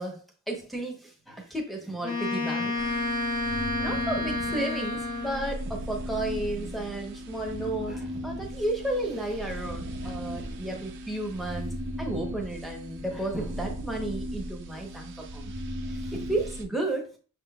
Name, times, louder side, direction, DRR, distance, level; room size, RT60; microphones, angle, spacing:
voice 1, 0.0-2.9 3.4-11.7 12.0-15.5 15.9-17.1, right 1 dB, ahead, 0 dB, 0.9 m, -33 dB
Wind instrument woodwind instrument, 2.0-5.6, left 2 dB, 20° left, 1.1 m, -30 dB
sound 1, 2.8-16.6, equal, 55° right, 0.6 m, -37 dB
6.0 x 3.7 x 2.3 m, 0.39 s
head